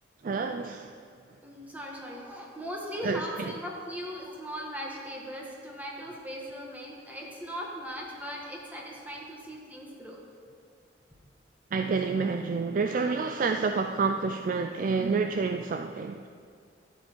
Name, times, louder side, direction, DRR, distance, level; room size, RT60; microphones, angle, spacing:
voice 1, 0.2-0.9 3.0-3.6 11.7-16.3, right 4 dB, 45° right, 6 dB, 0.3 m, -29 dB
voice 2, 1.4-10.2, equal, 10° right, -2 dB, 1.6 m, -39 dB
12.5 x 7.7 x 4.6 m, 2.3 s
head